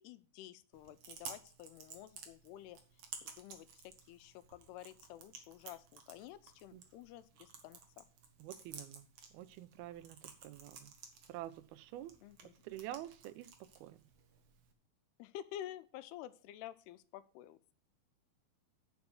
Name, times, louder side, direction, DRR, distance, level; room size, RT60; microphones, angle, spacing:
voice 1, 0.0-2.8 3.2-8.0 12.2-12.7 15.2-17.6, left 12 dB, 85° left, 14 dB, 2.7 m, -51 dB
Chewing mastication, 0.7-14.7, right 6 dB, 55° right, 1.9 m, -55 dB
voice 2, 8.4-9.1 9.3-10.9 11.3-12.1 12.6-14.0, right 13 dB, 80° right, 14 dB, 2.4 m, -48 dB
9.4 x 5.2 x 7.0 m, 0.40 s
omnidirectional pair, 4.5 m